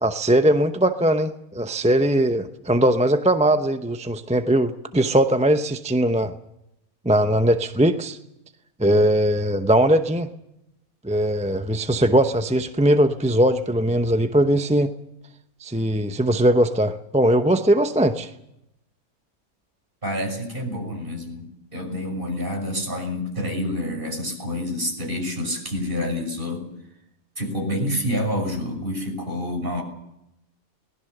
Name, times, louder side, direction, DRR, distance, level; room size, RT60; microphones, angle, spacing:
voice 1, 0.0-6.3 7.0-8.2 8.8-10.3 11.0-14.9 15.6-18.3, right 1 dB, 5° right, 8 dB, 0.5 m, -20 dB
voice 2, 20.0-26.6 27.4-29.8, left 1 dB, 35° right, 2 dB, 6.3 m, -28 dB
23.5 x 19.5 x 6.7 m, 0.84 s
omnidirectional pair, 1.5 m